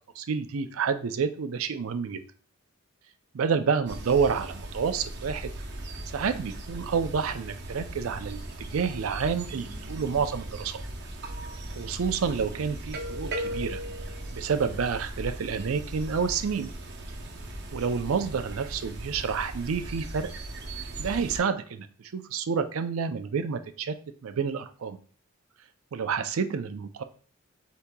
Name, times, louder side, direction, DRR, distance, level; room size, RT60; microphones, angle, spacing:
voice 1, 0.2-2.2 3.3-5.5 6.1-10.8 11.7-13.8 14.3-16.7 17.7-20.3 21.0-21.9 22.1-23.9 24.2-25.0 25.9-27.0, right 6 dB, 80° right, 9 dB, 0.4 m, -29 dB
sound 1, 3.9-21.4, right 1 dB, 55° right, 0.8 m, -38 dB
8.2 x 2.8 x 2.2 m, 0.41 s
head